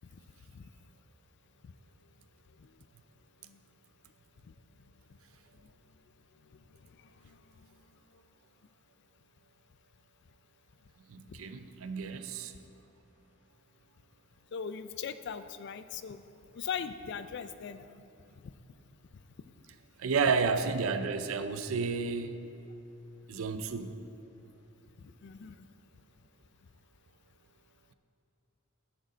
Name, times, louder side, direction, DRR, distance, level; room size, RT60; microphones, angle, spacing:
voice 1, 6.4-7.9 11.3-11.4 14.5-16.2 16.5-18.0 18.3-18.5 25.0-25.7, left 7 dB, 55° left, 12 dB, 0.4 m, -41 dB
voice 2, 11.1-12.5 20.0-22.5 23.3-23.9, right 5 dB, 85° right, 10 dB, 0.5 m, -31 dB
10.5 x 6.4 x 4.0 m, 2.8 s
head